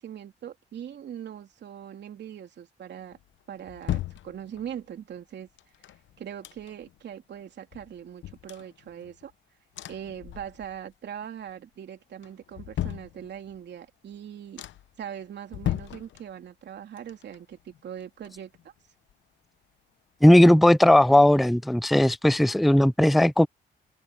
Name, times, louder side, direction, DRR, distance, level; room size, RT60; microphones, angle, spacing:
voice 1, 0.0-3.2 3.5-5.5 6.2-9.3 9.9-14.6 15.0-18.7, right 9 dB, 65° right, 3.3 m, -41 dB
sound 1, 3.1-4.9 5.6-7.0 7.4-7.5 7.7-9.3 9.7-10.9 11.2-11.7 12.2-13.7 14.1-14.2 14.6-15.0 15.5-16.7 17.0-18.8 19.1-19.2, left 13 dB, 75° left, 0.9 m, -37 dB
voice 2, 20.2-23.5, left 1 dB, ahead, 0.3 m, -17 dB
open air
cardioid pair, 95°, 19 cm